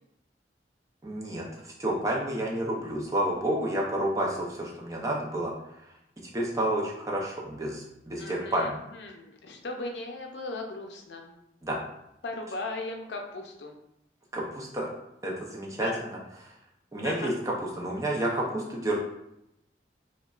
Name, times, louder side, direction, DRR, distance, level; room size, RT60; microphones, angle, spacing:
voice 1, 1.0-5.5 6.3-8.8 11.6-11.8 14.3-14.9 15.2-16.1 16.4-16.5 16.9-19.0, right 1 dB, 20° right, -3 dB, 0.5 m, -30 dB
voice 2, 8.2-11.4 12.2-13.8 15.8-16.0 17.0-17.3, left 2 dB, 75° left, 3 dB, 0.5 m, -37 dB
5.1 x 2.2 x 2.4 m, 0.83 s
head